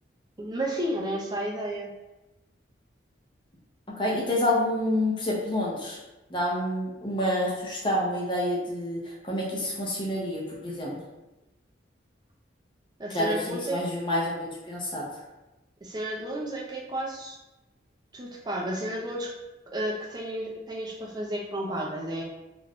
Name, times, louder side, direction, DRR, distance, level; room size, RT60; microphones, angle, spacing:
voice 1, 0.4-1.9 13.0-13.8 15.8-17.4 18.1-19.3 19.7-22.2, right 1 dB, 20° right, -1 dB, 0.4 m, -32 dB
voice 2, 4.0-6.0 6.3-11.0 13.1-15.0, left 1 dB, 25° left, -4 dB, 0.6 m, -28 dB
2.5 x 2.2 x 3.4 m, 1.0 s
head